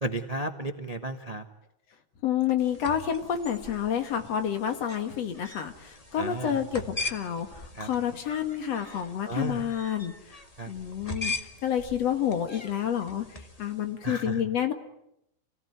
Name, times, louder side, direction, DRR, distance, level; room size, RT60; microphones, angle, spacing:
voice 1, 0.0-1.4 6.2-6.6 7.7-7.9 9.2-9.6 10.6-10.7 14.0-14.4, right 2 dB, 75° right, 7 dB, 0.3 m, -33 dB
voice 2, 2.2-10.4 10.7-11.3 11.6-13.2 13.6-14.7, left 9 dB, 60° left, 7 dB, 3.0 m, -29 dB
sound 1, 2.6-13.9, left 3 dB, 20° left, 1.2 m, -41 dB
28.5 x 18.5 x 9.5 m, 0.78 s
omnidirectional pair, 3.4 m